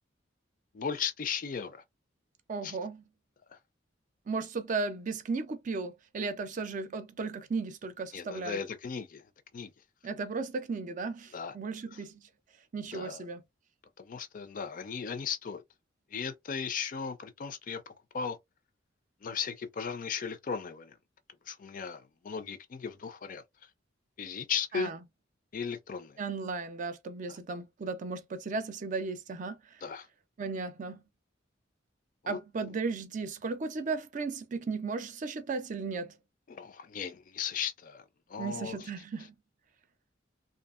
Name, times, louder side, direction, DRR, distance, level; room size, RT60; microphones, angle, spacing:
voice 1, 0.7-1.8 2.6-2.8 8.1-9.2 9.5-9.7 11.3-11.5 12.9-13.2 14.0-15.6 16.1-18.4 19.2-20.9 21.5-23.4 24.2-24.9 25.5-26.2 29.8-30.1 32.2-32.4 36.5-38.0 38.3-38.8, left 6 dB, 45° left, 0.4 m, -36 dB
voice 2, 2.5-3.0 4.3-8.6 10.0-12.2 12.7-13.4 24.7-25.0 26.2-29.6 30.4-31.0 32.3-36.1 38.4-39.3, right 4 dB, 45° right, 0.4 m, -35 dB
2.7 x 2.4 x 2.4 m
head